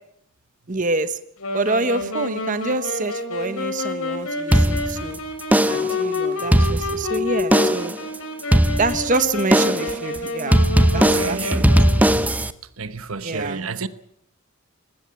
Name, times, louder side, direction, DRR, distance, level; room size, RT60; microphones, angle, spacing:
voice 1, 0.7-1.2 1.5-5.2 5.7-7.9 8.8-10.6 10.9-11.6 13.2-13.6, right 3 dB, 40° right, 1.1 m, -26 dB
Wind instrument woodwind instrument, 1.4-12.3, left 3 dB, 85° left, 4.5 m, -28 dB
sound 1, 4.5-5.1 5.5-6.0 6.4-7.1 7.5-8.0 8.5-9.1 9.5-10.0 10.5-12.5, right 1 dB, 5° right, 0.8 m, -18 dB
voice 2, 10.8-11.8 12.8-13.9, right 4 dB, 80° right, 1.1 m, -31 dB
20.0 x 16.5 x 8.7 m
head